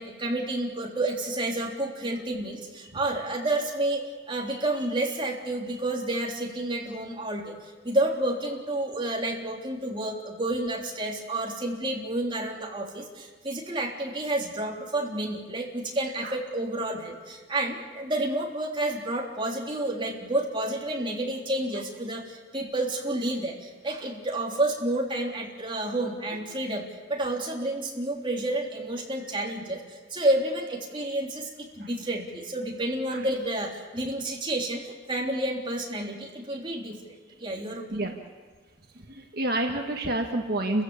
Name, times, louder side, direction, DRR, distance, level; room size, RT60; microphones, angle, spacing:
voice 1, 0.0-37.0 37.4-38.1, right 1 dB, 25° right, -1 dB, 3.5 m, -30 dB
voice 2, 39.1-40.8, right 1 dB, 55° right, 3 dB, 1.6 m, -28 dB
29.5 x 16.0 x 7.2 m, 1.4 s
head